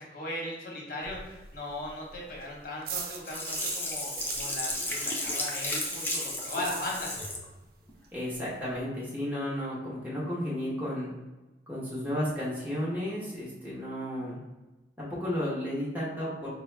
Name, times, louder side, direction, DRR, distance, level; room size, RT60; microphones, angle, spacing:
voice 1, 0.0-7.1, left 1 dB, 50° left, -2 dB, 1.1 m, -38 dB
sound 1, 1.0-7.4 7.6-7.7 8.0-8.1 8.3-8.8, right 6 dB, 55° right, 0.5 m, -41 dB
Sink (filling or washing), 3.2-7.4 7.9-8.0, left 1 dB, 10° left, 0.5 m, -33 dB
voice 2, 8.1-11.1 11.7-14.4 15.0-16.5, equal, 10° right, -7 dB, 1.0 m, -33 dB
4.7 x 2.3 x 3.2 m, 1.1 s
head